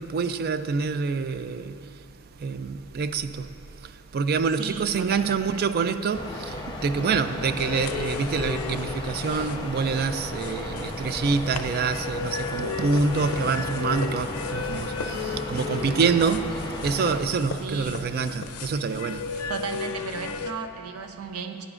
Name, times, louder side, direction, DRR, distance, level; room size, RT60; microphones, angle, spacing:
voice 1, 0.0-1.7 2.4-3.5 4.1-6.5 6.8-16.5 16.8-19.2, right 5 dB, 45° right, 0.3 m, -26 dB
voice 2, 4.6-5.7 17.6-18.0 19.5-21.7, right 5 dB, 85° right, 0.7 m, -35 dB
sound 1, 6.1-17.2, left 1 dB, 20° left, 0.7 m, -35 dB
sound 2, 7.6-20.5, left 5 dB, 85° left, 0.5 m, -35 dB
15.0 x 9.8 x 2.4 m
head